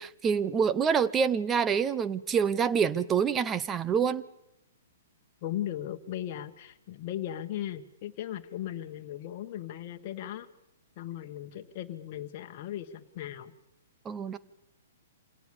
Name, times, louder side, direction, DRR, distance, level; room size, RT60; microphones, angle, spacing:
voice 1, 0.0-4.2 14.0-14.4, right 7 dB, 20° right, 15 dB, 0.8 m, -26 dB
voice 2, 5.4-10.5 11.0-13.5, left 12 dB, 45° left, 4 dB, 1.3 m, -37 dB
26.5 x 18.0 x 7.1 m, 0.85 s
hypercardioid pair, 120°, 0 cm